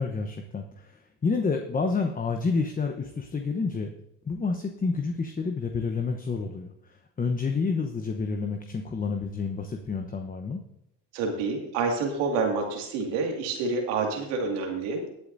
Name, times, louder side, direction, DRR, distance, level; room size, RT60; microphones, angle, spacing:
voice 1, 0.0-3.9 4.2-10.6, left 4 dB, 20° left, 4 dB, 1.0 m, -29 dB
voice 2, 11.1-15.0, right 4 dB, 85° right, 1 dB, 2.3 m, -28 dB
18.0 x 8.2 x 2.7 m, 0.80 s
supercardioid pair, 90°, 37 cm